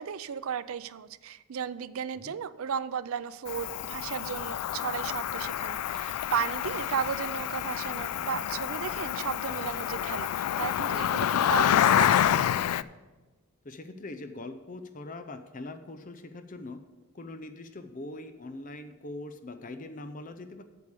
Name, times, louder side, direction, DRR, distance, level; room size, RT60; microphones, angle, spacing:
voice 1, 0.0-12.3, right 7 dB, 70° right, 15 dB, 0.4 m, -35 dB
Cricket, 3.5-12.8, left 10 dB, 90° left, 0.3 m, -28 dB
voice 2, 13.6-16.8 17.1-20.6, left 2 dB, 35° left, 9 dB, 0.5 m, -42 dB
8.3 x 6.7 x 6.8 m, 1.2 s
head